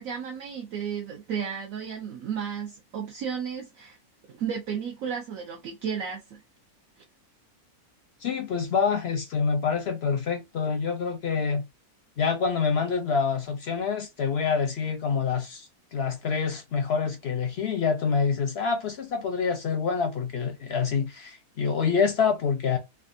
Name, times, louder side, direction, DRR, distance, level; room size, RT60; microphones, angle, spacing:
voice 1, 0.0-4.0 4.3-6.4, right 7 dB, 65° right, 1.0 m, -33 dB
voice 2, 8.2-11.6 12.2-22.8, left 5 dB, 60° left, 0.7 m, -26 dB
3.2 x 2.4 x 2.6 m
omnidirectional pair, 1.6 m